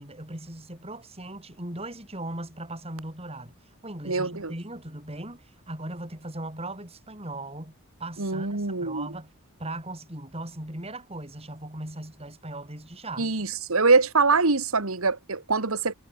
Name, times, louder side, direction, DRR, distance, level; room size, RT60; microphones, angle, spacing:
voice 1, 0.0-3.6 3.8-7.7 8.0-9.3 9.6-13.3, right 1 dB, 30° right, 7.4 m, -38 dB
voice 2, 4.1-4.5 8.2-9.1 13.2-15.9, right 3 dB, 80° right, 2.0 m, -24 dB
head